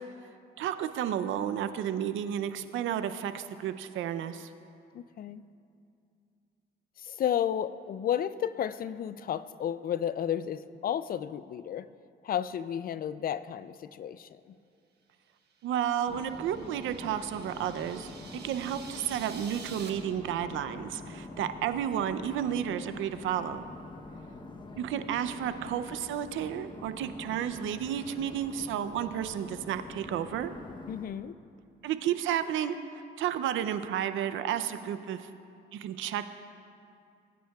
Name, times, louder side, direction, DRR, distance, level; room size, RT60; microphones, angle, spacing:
voice 1, 0.6-4.5 15.6-23.7 24.8-30.5 31.8-35.3 35.7-36.2, right 10 dB, 80° right, 11 dB, 0.5 m, -32 dB
voice 2, 4.9-5.4 7.0-11.9 12.2-14.6 30.9-31.3, left 9 dB, 50° left, 15 dB, 0.4 m, -32 dB
sound 1, 15.7-19.9, right 5 dB, 55° right, 1.3 m, -49 dB
sound 2, 16.1-31.1, left 2 dB, 25° left, 0.8 m, -45 dB
19.5 x 9.2 x 2.3 m, 2.4 s
cardioid pair, 90°, 20 cm